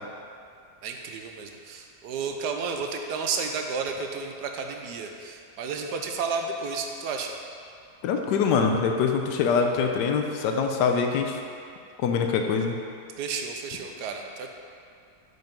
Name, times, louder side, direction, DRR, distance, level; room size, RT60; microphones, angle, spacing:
voice 1, 0.8-7.3 13.2-14.5, right 5 dB, 80° right, 3 dB, 1.3 m, -32 dB
voice 2, 8.0-11.4 12.0-12.8, left 5 dB, 85° left, 3 dB, 1.2 m, -24 dB
5.9 x 5.5 x 5.2 m, 2.4 s
omnidirectional pair, 1.8 m